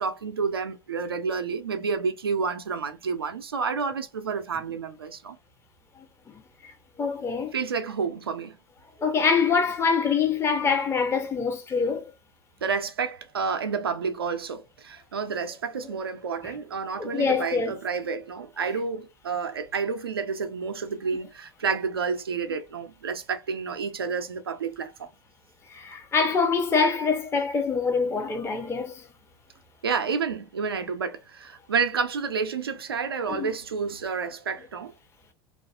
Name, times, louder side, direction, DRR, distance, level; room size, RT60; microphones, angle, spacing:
voice 1, 0.0-5.4 7.5-8.6 12.6-25.1 29.8-34.9, right 5 dB, 85° right, 0.4 m, -30 dB
voice 2, 7.0-7.5 9.0-12.1 16.4-16.6 17.0-17.7 25.7-29.0 33.3-33.5, left 5 dB, 20° left, 0.6 m, -25 dB
2.6 x 2.4 x 2.3 m
figure-of-eight pair, 75°, 12 cm